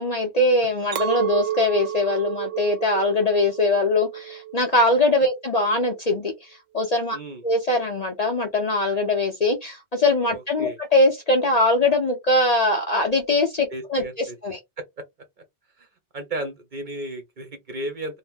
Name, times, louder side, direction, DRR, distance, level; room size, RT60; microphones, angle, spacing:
voice 1, 0.0-6.3 6.7-7.2 7.4-14.0 14.4-14.6, left 2 dB, 45° left, 0.6 m, -21 dB
Chink clink, 0.9-6.3, right 11 dB, 75° right, 0.9 m, -31 dB
voice 2, 7.1-7.4 10.3-10.8 13.7-14.4 14.8-15.0 15.8-15.9 16.1-18.2, right 1 dB, 50° right, 0.7 m, -34 dB
2.8 x 2.0 x 3.4 m
omnidirectional pair, 1.2 m